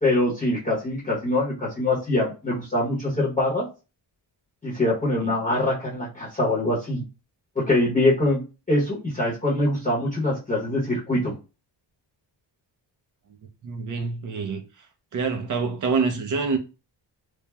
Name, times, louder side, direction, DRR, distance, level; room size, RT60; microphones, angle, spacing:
voice 1, 0.0-3.7 4.6-7.0 7.6-8.4 8.7-11.3, left 1 dB, 15° left, 0.8 m, -23 dB
voice 2, 13.6-14.6 15.1-16.6, right 4 dB, 45° right, 0.5 m, -26 dB
3.1 x 2.0 x 2.2 m
wide cardioid pair, 175°, 45 cm